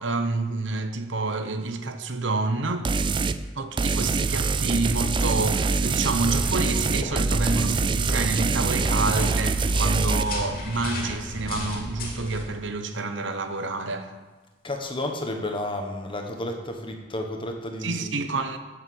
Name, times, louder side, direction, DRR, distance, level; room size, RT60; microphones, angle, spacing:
voice 1, 0.0-2.9 3.6-14.1 17.8-18.6, right 3 dB, 65° right, 1.0 m, -28 dB
sound 1, 2.8-3.4 3.8-10.2, right 4 dB, 25° right, 0.4 m, -24 dB
sound 2, 6.0-12.4, left 1 dB, 50° left, 2.4 m, -35 dB
voice 2, 14.6-18.2, left 1 dB, 25° left, 1.3 m, -31 dB
8.4 x 8.0 x 7.9 m
head